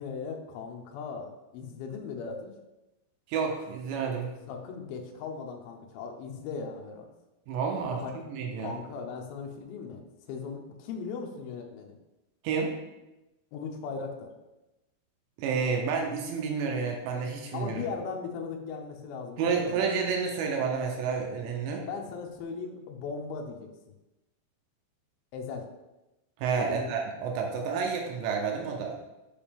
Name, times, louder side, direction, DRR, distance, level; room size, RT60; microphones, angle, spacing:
voice 1, 0.0-2.5 4.5-7.1 7.9-8.1 8.6-12.0 13.5-14.3 17.5-19.9 21.8-23.7 25.3-25.7 26.6-27.0, left 5 dB, 85° left, 2 dB, 2.1 m, -38 dB
voice 2, 3.3-4.3 7.5-8.7 12.4-12.7 15.4-17.8 19.4-21.9 26.4-29.0, right 5 dB, 80° right, 1 dB, 2.8 m, -30 dB
7.3 x 5.0 x 3.5 m, 1.0 s
omnidirectional pair, 5.3 m